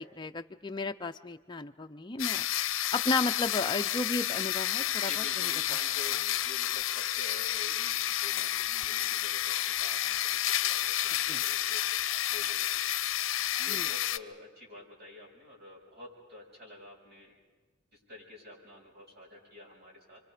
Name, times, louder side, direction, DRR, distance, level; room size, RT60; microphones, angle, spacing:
voice 1, 0.0-2.5 2.9-5.5 11.3-11.4 13.7-13.9, left 3 dB, 25° left, 5 dB, 0.6 m, -34 dB
sound 1, 2.2-14.2, left 13 dB, 85° left, 0.6 m, -30 dB
voice 2, 4.9-11.8 12.3-12.9 13.6-17.3 18.1-20.2, left 2 dB, 55° right, -4 dB, 7.4 m, -48 dB
29.0 x 24.5 x 5.1 m, 1.3 s
head